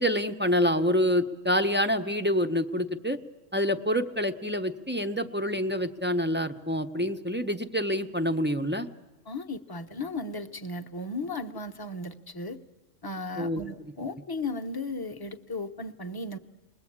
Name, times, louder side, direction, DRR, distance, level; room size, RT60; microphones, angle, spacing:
voice 1, 0.0-3.2 3.5-8.9 13.4-13.6, equal, 10° right, 6 dB, 0.6 m, -27 dB
voice 2, 9.3-12.6 13.0-16.4, left 2 dB, 20° left, 4 dB, 0.8 m, -35 dB
29.0 x 21.5 x 8.7 m, 1.2 s
omnidirectional pair, 1.3 m